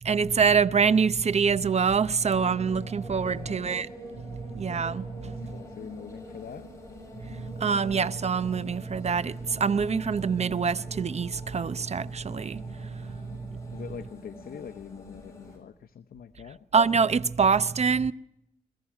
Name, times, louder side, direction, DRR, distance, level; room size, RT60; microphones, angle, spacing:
voice 1, 0.0-5.6 7.1-13.8 16.7-18.1, right 6 dB, 45° right, 0.7 m, -26 dB
sound 1, 2.2-15.6, left 1 dB, 20° left, 7.7 m, -45 dB
voice 2, 3.1-3.7 5.2-6.7 13.7-16.6, left 8 dB, 75° left, 0.8 m, -43 dB
22.0 x 14.5 x 9.8 m
cardioid pair, 80°, 16 cm